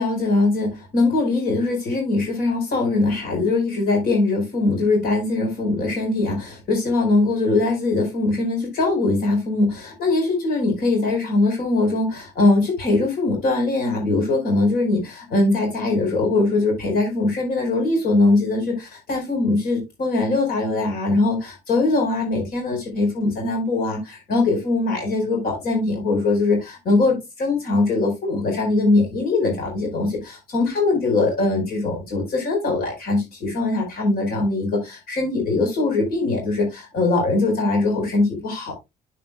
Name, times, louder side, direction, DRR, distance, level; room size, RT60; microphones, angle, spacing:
voice 1, 0.0-38.8, left 2 dB, 60° left, 4.5 m, -21 dB
9.3 x 7.8 x 2.2 m
cardioid pair, 110°, 17 cm